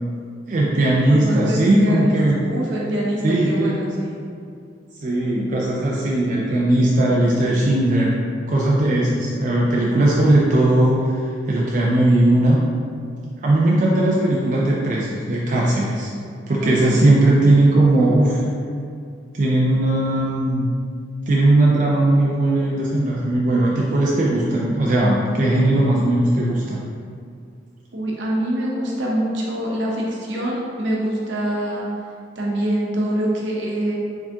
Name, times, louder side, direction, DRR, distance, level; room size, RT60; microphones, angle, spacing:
voice 1, 0.5-2.4 3.2-3.8 5.0-8.1 8.5-12.6 13.4-16.1 16.5-18.5 19.3-20.7 21.3-26.8, right 1 dB, 45° right, -5 dB, 0.4 m, -18 dB
voice 2, 1.1-4.2 16.6-17.1 27.9-31.8 32.4-34.0, right 1 dB, 75° right, -3 dB, 0.9 m, -25 dB
4.7 x 3.5 x 2.8 m, 2.4 s
head